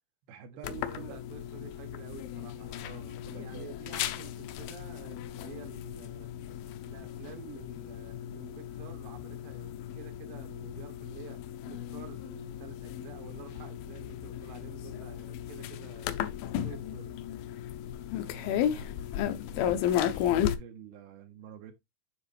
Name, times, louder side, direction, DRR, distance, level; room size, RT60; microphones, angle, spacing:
voice 1, 0.3-1.2 2.8-3.7 15.6-15.7 18.2-19.0 19.5-21.7, right 7 dB, 85° right, 3.1 m, -48 dB
sound 1, 0.6-20.5, left 10 dB, 80° left, 2.4 m, -35 dB
voice 2, 0.8-3.0 3.3-6.3 6.8-11.4 11.6-16.2 16.6-17.1, right 6 dB, 65° right, 1.4 m, -49 dB
9.7 x 4.0 x 3.3 m
omnidirectional pair, 4.4 m